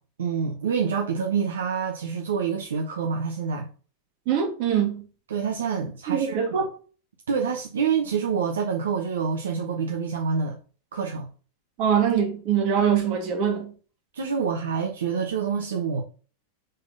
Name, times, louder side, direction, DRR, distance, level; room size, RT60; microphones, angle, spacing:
voice 1, 0.2-3.7 5.3-6.4 7.3-10.6 10.9-11.3 14.1-16.0, right 6 dB, 65° right, 0.8 m, -27 dB
voice 2, 4.3-5.1 6.1-6.7 11.8-13.7, right 8 dB, 45° right, 1.8 m, -23 dB
5.5 x 3.8 x 5.2 m
figure-of-eight pair, 90°, 0 cm